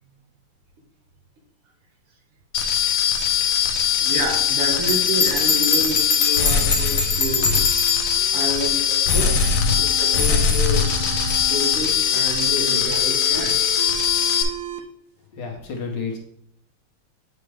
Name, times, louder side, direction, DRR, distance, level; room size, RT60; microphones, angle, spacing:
sound 1, 2.5-14.4, left 8 dB, 75° left, 1.7 m, -21 dB
voice 1, 4.0-7.6 8.0-10.8 11.5-13.6, right 1 dB, 85° right, 1 dB, 2.5 m, -29 dB
Bell, 4.9-8.1, left 3 dB, 40° left, 1.1 m, -23 dB
sound 2, 6.3-10.2 10.7-14.8, right 7 dB, 60° right, 1.0 m, -37 dB
voice 2, 15.3-16.2, left 5 dB, 55° left, 2 dB, 1.8 m, -30 dB
8.7 x 5.1 x 3.4 m, 0.72 s
omnidirectional pair, 2.4 m